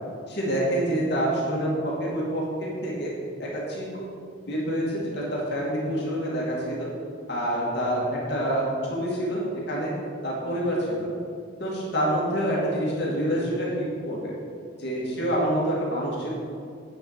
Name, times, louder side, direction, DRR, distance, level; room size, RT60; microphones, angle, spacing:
voice 1, 0.3-3.1 3.4-4.0 4.5-6.9 7.3-9.4 9.7-9.9 10.2-11.1 11.6-14.3 14.8-16.3, equal, 60° left, -5 dB, 2.4 m, -27 dB
8.6 x 6.7 x 7.8 m, 2.4 s
head